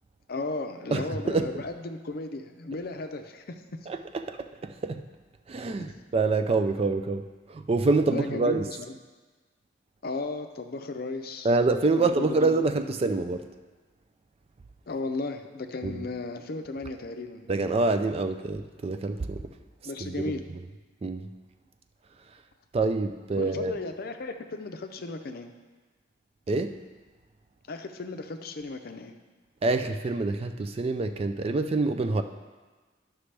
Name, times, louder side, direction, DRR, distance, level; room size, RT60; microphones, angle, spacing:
voice 1, 0.3-3.6 5.7-5.9 8.1-8.9 10.0-11.5 11.9-12.6 14.9-17.5 19.9-20.5 23.4-25.5 27.7-29.1, left 3 dB, 50° left, 6 dB, 0.6 m, -35 dB
voice 2, 0.9-1.5 3.9-5.1 5.5-8.7 11.4-13.5 15.8-16.0 17.5-19.5 20.0-20.4 21.0-21.3 22.7-23.8 26.5-26.8 29.6-32.2, right 3 dB, 30° right, 8 dB, 0.3 m, -26 dB
11.5 x 6.0 x 3.3 m, 1.3 s
head